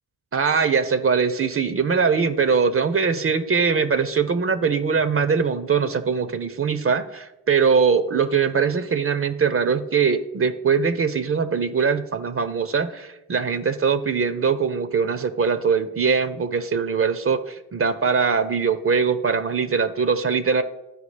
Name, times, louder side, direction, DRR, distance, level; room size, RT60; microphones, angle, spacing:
voice 1, 0.3-20.6, right 5 dB, 40° right, 12 dB, 0.6 m, -22 dB
12.0 x 4.7 x 3.3 m, 0.96 s
cardioid pair, 55°, 36 cm